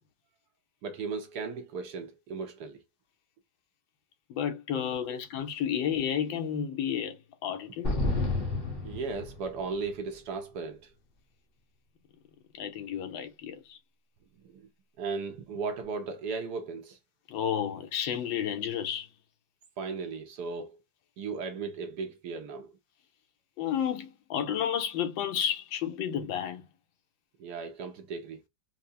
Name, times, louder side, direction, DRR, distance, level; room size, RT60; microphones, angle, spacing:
voice 1, 0.8-2.8 5.1-5.2 8.8-10.9 14.4-14.7 15.0-17.0 19.8-20.8 21.2-22.7 27.4-28.4, right 4 dB, 70° right, 1.0 m, -36 dB
voice 2, 4.3-7.2 7.4-7.9 12.5-13.8 17.3-19.1 23.6-26.6, left 9 dB, 80° left, 1.5 m, -31 dB
sound 1, 7.8-9.8, left 2 dB, 35° left, 1.0 m, -30 dB
4.5 x 2.0 x 2.6 m
omnidirectional pair, 2.1 m